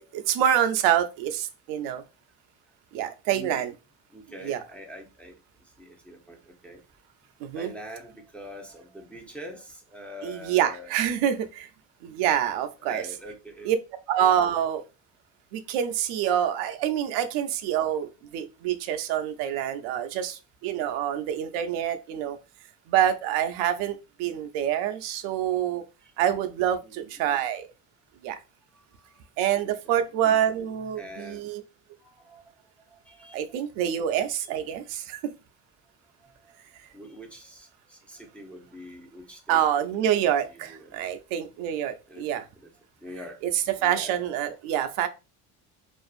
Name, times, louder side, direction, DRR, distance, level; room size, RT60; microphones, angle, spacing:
voice 1, 0.0-2.0 2.9-3.7 4.4-4.6 7.4-7.7 10.2-11.7 12.0-13.0 13.7-13.8 14.1-14.8 15.5-22.4 22.9-25.8 26.2-27.7 28.2-28.4 29.4-31.6 33.3-35.3 39.5-42.4 43.4-45.1, right 10 dB, 75° right, 0.5 m, -26 dB
voice 2, 3.3-3.6 4.1-5.4 5.8-6.8 7.5-11.0 12.8-13.8 26.0-26.1 26.8-27.4 28.7-29.2 29.6-29.7 31.0-31.5 32.0-32.4 32.9-33.5 36.2-36.6 36.9-39.6 39.9-40.1 40.5-41.0 42.1-42.2 42.6-42.7 43.0-43.4 43.8-44.4, equal, 5° left, 0.6 m, -44 dB
2.5 x 2.4 x 2.3 m
supercardioid pair, 80°, 46 cm